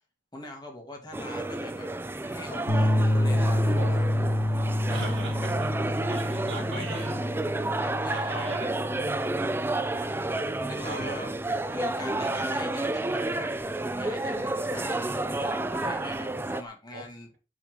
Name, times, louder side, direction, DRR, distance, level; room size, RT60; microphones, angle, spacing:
voice 1, 0.3-1.9 2.2-4.1 6.7-7.2 7.7-8.8 9.8-10.0 10.6-11.3 11.7-13.5 13.9-17.3, left 2 dB, 20° left, 1.7 m, -42 dB
sound 1, 1.1-16.6, right 2 dB, 10° right, 0.3 m, -31 dB
sound 2, 2.7-11.2, left 1 dB, 80° left, 1.8 m, -28 dB
voice 2, 3.7-4.1 4.9-5.7 6.1-7.1 8.1-8.7 10.8-11.2 14.2-14.5 16.9-17.1, right 2 dB, 70° right, 2.1 m, -38 dB
6.2 x 3.7 x 4.8 m
head